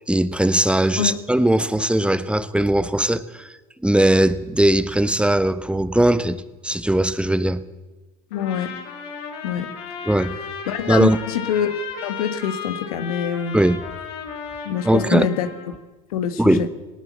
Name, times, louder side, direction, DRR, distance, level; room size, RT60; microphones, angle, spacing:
voice 1, 0.1-3.5 3.8-6.4 6.6-7.6 10.1-10.4 10.9-11.2 13.5-13.8 14.8-15.3 16.4-16.7, right 1 dB, 5° right, 1.2 m, -19 dB
voice 2, 8.3-8.7 9.4-9.7 10.7-13.6 14.6-15.5 16.1-16.7, left 8 dB, 85° left, 1.6 m, -25 dB
Trumpet, 8.3-15.7, left 6 dB, 65° left, 6.4 m, -35 dB
19.0 x 19.0 x 7.5 m
hypercardioid pair, 75°, 18 cm